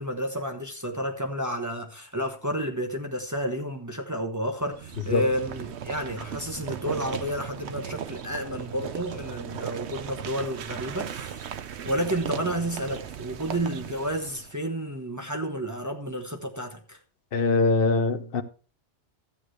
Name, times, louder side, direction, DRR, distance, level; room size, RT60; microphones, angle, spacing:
voice 1, 0.0-11.5 11.8-17.0, equal, 15° right, 1.1 m, -31 dB
sound 1, 4.6-14.6, right 8 dB, 75° right, 1.0 m, -37 dB
voice 2, 17.3-18.4, left 3 dB, 55° left, 1.1 m, -22 dB
13.0 x 8.6 x 3.2 m
omnidirectional pair, 1.2 m